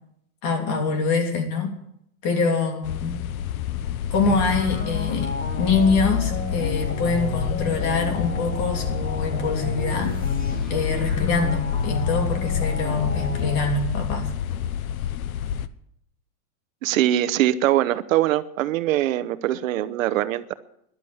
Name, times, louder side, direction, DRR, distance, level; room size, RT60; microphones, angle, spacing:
voice 1, 0.4-1.8 2.2-3.2 4.1-10.2 10.7-14.3, left 4 dB, 40° left, 4 dB, 3.3 m, -24 dB
sound 1, 2.8-15.7, left 9 dB, 75° left, 1.0 m, -28 dB
sound 2, 4.2-13.7, left 2 dB, 20° left, 1.8 m, -32 dB
voice 2, 16.8-20.5, right 13 dB, 70° right, 12 dB, 1.0 m, -22 dB
13.0 x 11.5 x 7.9 m, 0.74 s
supercardioid pair, 155°, 42 cm